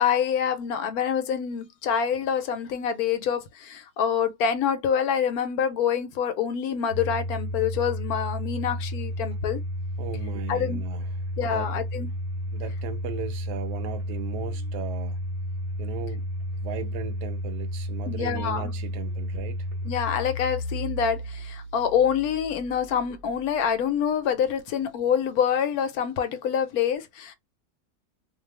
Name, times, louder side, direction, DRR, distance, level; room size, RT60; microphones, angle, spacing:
voice 1, 0.0-9.6 10.5-10.8 11.4-12.1 18.1-18.7 19.8-27.3, left 8 dB, 70° left, 1.0 m, -26 dB
Domestic sounds home sounds, 6.9-23.8, equal, 55° right, 0.9 m, -32 dB
voice 2, 10.0-11.1 11.5-11.7 12.5-15.2 15.8-16.2 16.6-19.7, right 7 dB, 80° right, 1.2 m, -37 dB
2.7 x 2.3 x 3.1 m
omnidirectional pair, 1.7 m